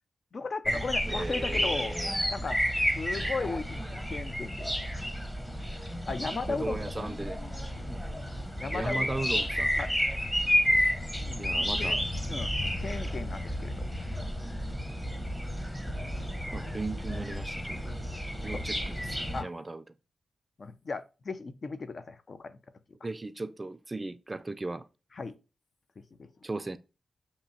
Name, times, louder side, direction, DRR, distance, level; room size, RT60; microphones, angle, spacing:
voice 1, 0.3-2.0 2.3-2.6 2.9-4.7 6.1-7.2 7.9-8.1 8.6-9.1 9.8-9.9 11.2-11.5 11.8-12.0 12.3-12.5 12.8-13.9 18.5-18.6 19.3-19.5 20.6-22.6 25.1-25.3 26.2-26.3, left 4 dB, 60° left, 0.5 m, -36 dB
sound 1, 0.7-19.4, equal, 10° left, 0.8 m, -31 dB
voice 2, 1.1-2.1 6.5-7.4 8.7-9.7 11.4-12.0 16.5-17.9 18.4-19.2 19.4-19.8 23.0-24.9 26.4-26.8, right 2 dB, 30° right, 0.4 m, -37 dB
6.7 x 2.7 x 2.6 m
supercardioid pair, 40°, 0 cm